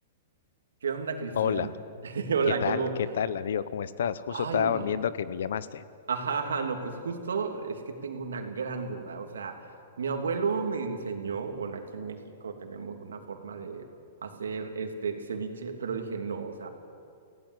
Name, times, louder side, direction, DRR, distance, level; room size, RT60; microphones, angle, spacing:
voice 1, 0.8-1.7 2.0-3.0 4.3-4.9 6.1-9.5 10.0-13.9 14.2-16.7, right 5 dB, 85° right, 4 dB, 2.9 m, -32 dB
voice 2, 1.4-1.7 2.6-2.8 3.1-5.8, left 8 dB, 75° left, 16 dB, 1.0 m, -29 dB
26.0 x 17.0 x 8.3 m, 2.4 s
hypercardioid pair, 125°, 0 cm